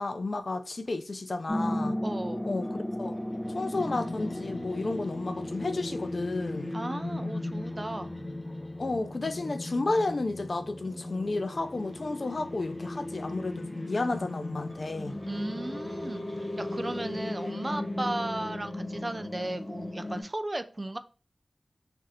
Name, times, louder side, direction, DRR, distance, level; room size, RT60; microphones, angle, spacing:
voice 1, 0.0-2.0 2.4-2.7 3.0-3.2 3.5-6.7 8.8-15.2, left 2 dB, 60° left, 0.4 m, -32 dB
sound 1, 1.5-20.2, left 1 dB, 25° left, 0.7 m, -36 dB
voice 2, 2.0-2.5 6.7-8.2 15.3-21.0, right 1 dB, 35° right, 0.4 m, -35 dB
3.2 x 2.5 x 4.0 m
cardioid pair, 50°, 0 cm